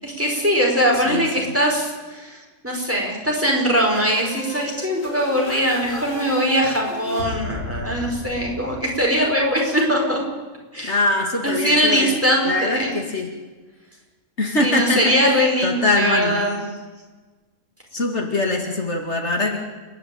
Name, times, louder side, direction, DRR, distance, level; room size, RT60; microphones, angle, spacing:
voice 1, 0.0-10.2 10.7-11.0 11.4-12.9 14.6-16.6, equal, 10° right, -1 dB, 5.0 m, -21 dB
voice 2, 1.1-1.5 10.8-12.1 12.4-13.3 14.4-16.4 17.9-19.6, left 2 dB, 60° left, 2 dB, 2.7 m, -23 dB
sound 1, 3.8-9.4, left 1 dB, 80° left, 5.9 m, -33 dB
29.5 x 10.5 x 9.3 m, 1.3 s
omnidirectional pair, 1.3 m